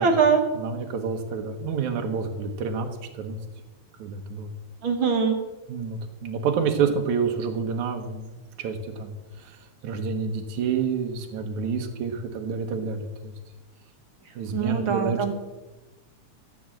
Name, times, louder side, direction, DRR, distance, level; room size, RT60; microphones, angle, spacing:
voice 1, 0.0-0.4 4.8-5.4 14.5-15.3, right 5 dB, 55° right, 5 dB, 1.7 m, -22 dB
voice 2, 0.5-2.9 3.1-3.4 4.0-4.5 5.7-8.3 8.6-9.6 9.8-13.3 14.4-15.3, right 5 dB, 80° right, 3 dB, 2.6 m, -28 dB
14.5 x 6.2 x 7.7 m, 1.1 s
omnidirectional pair, 3.3 m